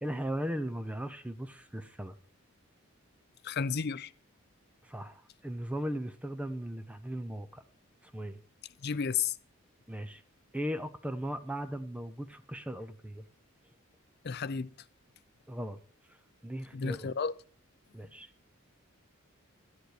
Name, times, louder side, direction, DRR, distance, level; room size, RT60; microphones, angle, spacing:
voice 1, 0.0-2.2 4.8-7.6 8.1-8.4 9.9-10.2 10.5-13.2 15.5-15.8 16.4-17.1 17.9-18.3, equal, 5° right, 0.6 m, -37 dB
voice 2, 3.4-4.1 8.8-9.4 14.2-14.7 16.7-17.3, left 6 dB, 50° left, 0.5 m, -32 dB
12.0 x 10.5 x 4.8 m
head